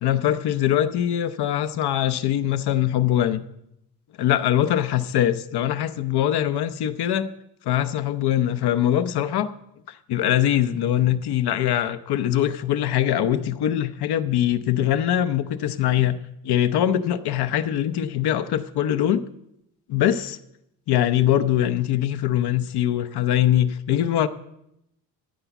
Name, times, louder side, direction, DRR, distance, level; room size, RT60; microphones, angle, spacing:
voice 1, 0.0-3.4 4.2-7.3 7.6-9.5 9.9-16.2 16.4-19.2 19.9-20.4 20.9-24.3, left 11 dB, 80° left, 0.8 m, -22 dB
14.0 x 8.0 x 6.0 m
cardioid pair, 145°, 39 cm